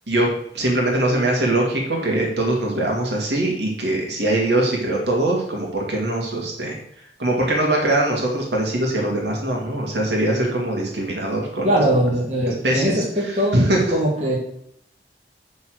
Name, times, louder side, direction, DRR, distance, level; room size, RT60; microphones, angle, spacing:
voice 1, 0.1-6.8 7.2-11.8 12.5-13.8, right 1 dB, 75° right, -1 dB, 2.6 m, -22 dB
voice 2, 11.6-13.6 13.9-14.4, right 1 dB, 40° right, -3 dB, 2.3 m, -21 dB
10.5 x 4.4 x 6.5 m, 0.70 s
head